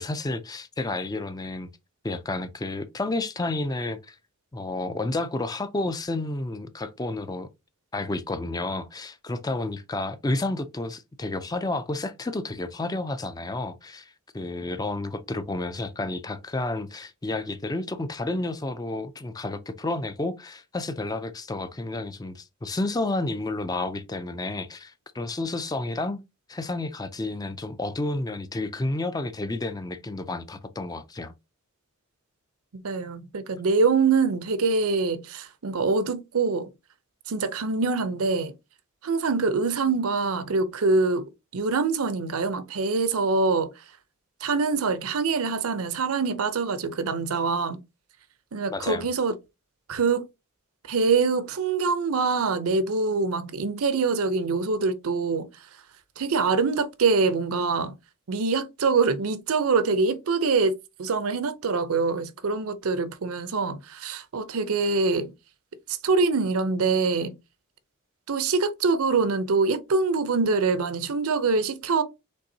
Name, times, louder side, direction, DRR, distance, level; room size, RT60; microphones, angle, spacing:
voice 1, 0.0-1.7 2.0-4.2 4.5-7.5 7.9-26.2 26.5-31.3 48.7-49.1, left 2 dB, 15° left, 0.4 m, -31 dB
voice 2, 32.7-36.7 37.3-38.5 39.0-43.8 44.4-47.8 48.5-49.3 49.9-50.3 50.8-55.7 56.2-57.9 58.3-65.3 65.9-67.4 68.3-72.0, right 4 dB, 70° right, 0.6 m, -24 dB
5.3 x 3.6 x 2.7 m
head